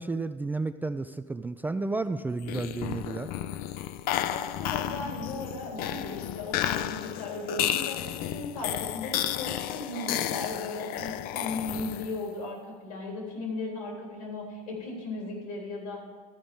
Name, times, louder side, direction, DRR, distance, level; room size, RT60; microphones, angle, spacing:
voice 1, 0.0-3.3, right 3 dB, 10° right, 10 dB, 0.3 m, -32 dB
sound 1, 2.4-12.3, left 11 dB, 50° left, 0.5 m, -32 dB
voice 2, 4.3-16.1, left 2 dB, 75° left, -1 dB, 3.7 m, -37 dB
13.0 x 5.0 x 7.1 m, 1.5 s
hypercardioid pair, 80°, 19 cm